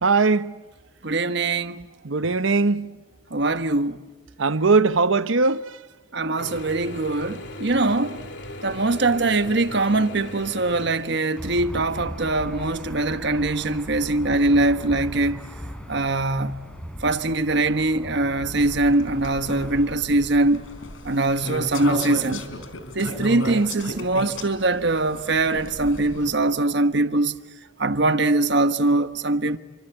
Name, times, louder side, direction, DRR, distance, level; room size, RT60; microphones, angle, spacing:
voice 1, 0.0-0.5 2.0-2.9 4.4-5.7, right 4 dB, 85° right, 1.0 m, -20 dB
voice 2, 1.0-1.9 3.3-4.0 6.1-8.2 8.6-15.4 15.9-16.7 17.0-20.6 21.0-22.5 22.9-27.4 27.8-29.6, right 2 dB, 60° right, 1.3 m, -22 dB
Mechanisms / Drill, 6.4-11.9, left 1 dB, 60° left, 3.3 m, -38 dB
Aircraft / Engine, 11.4-19.9, equal, 5° left, 4.0 m, -38 dB
sound 1, 18.5-26.3, left 1 dB, 85° left, 3.9 m, -35 dB
28.5 x 25.5 x 8.2 m
head